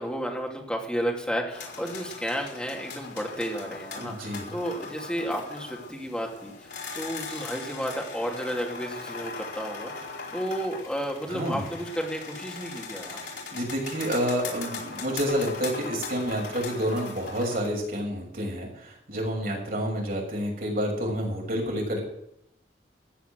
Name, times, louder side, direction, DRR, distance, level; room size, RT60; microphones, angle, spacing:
voice 1, 0.0-6.7 6.9-9.9 10.3-13.2, equal, 5° left, 0 dB, 2.8 m, -32 dB
sound 1, 1.5-17.7, left 4 dB, 70° left, 4.4 m, -39 dB
voice 2, 4.0-4.5 11.3-11.7 13.1-22.0, equal, 50° right, -1 dB, 6.6 m, -29 dB
15.0 x 9.4 x 7.7 m, 0.78 s
head